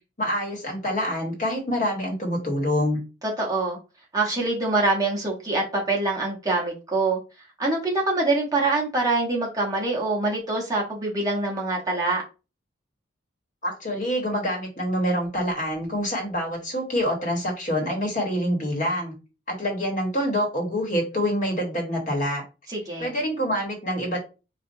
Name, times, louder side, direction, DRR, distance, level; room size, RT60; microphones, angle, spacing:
voice 1, 0.2-3.0 13.6-19.1 19.5-22.4 23.0-24.2, equal, 40° left, 0 dB, 1.3 m, -26 dB
voice 2, 3.4-3.8 4.1-7.2 7.6-12.2 22.7-23.1, right 2 dB, 20° right, -2 dB, 0.9 m, -24 dB
4.3 x 2.3 x 2.7 m, 0.30 s
head